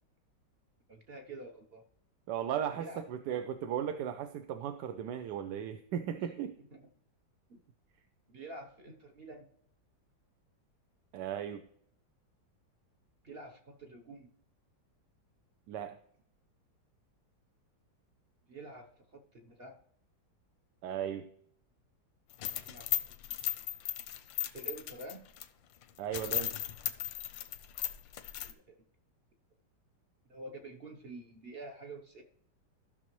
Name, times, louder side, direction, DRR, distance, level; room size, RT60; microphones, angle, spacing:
voice 1, 0.9-1.8 2.8-3.4 6.6-6.9 7.5-7.6 8.3-9.4 13.2-14.3 18.5-19.8 22.6-23.0 24.5-25.2 28.4-28.8 30.3-32.2, right 2 dB, 45° right, 3 dB, 0.8 m, -48 dB
voice 2, 2.3-6.5 11.1-11.7 15.7-16.0 20.8-21.3 26.0-26.5, right 9 dB, 75° right, 9 dB, 1.1 m, -36 dB
sound 1, 22.3-25.5 25.8-25.9 26.1-28.5, left 12 dB, 90° left, 1.4 m, -36 dB
14.5 x 6.1 x 3.1 m, 0.69 s
omnidirectional pair, 2.0 m